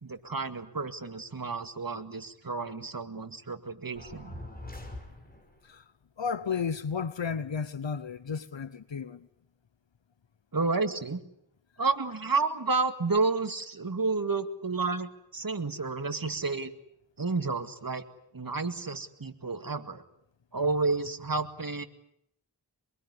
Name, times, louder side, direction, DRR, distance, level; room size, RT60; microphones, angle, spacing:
voice 1, 0.0-4.4 10.5-11.2 11.8-16.7 17.2-18.0 18.3-20.0 20.5-21.8, right 4 dB, 50° right, 2.1 m, -31 dB
sound 1, 4.0-5.6, left 1 dB, 20° left, 6.1 m, -43 dB
voice 2, 6.2-9.3, left 6 dB, 75° left, 1.0 m, -33 dB
23.5 x 22.5 x 9.8 m
wide cardioid pair, 60°, 45 cm